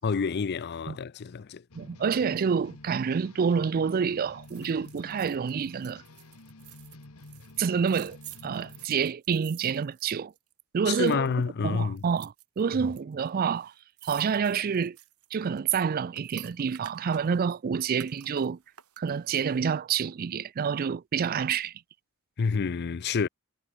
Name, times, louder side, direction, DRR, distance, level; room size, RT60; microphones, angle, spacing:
voice 1, 0.0-1.6 10.9-12.0 12.8-12.9 22.4-23.3, left 5 dB, 50° left, 0.4 m, -28 dB
sound 1, 1.7-8.9, left 2 dB, 75° left, 1.8 m, -50 dB
voice 2, 1.8-6.0 7.6-8.2 8.4-10.3 10.7-11.3 11.6-13.7 14.0-15.0 15.3-18.6 19.0-21.7, right 6 dB, 40° right, 0.4 m, -28 dB
sound 2, 4.4-10.6 10.9-11.4 12.0-13.0 13.3-13.4 13.6-17.5 17.9-19.7 20.1-20.2, right 13 dB, 85° right, 2.2 m, -50 dB
head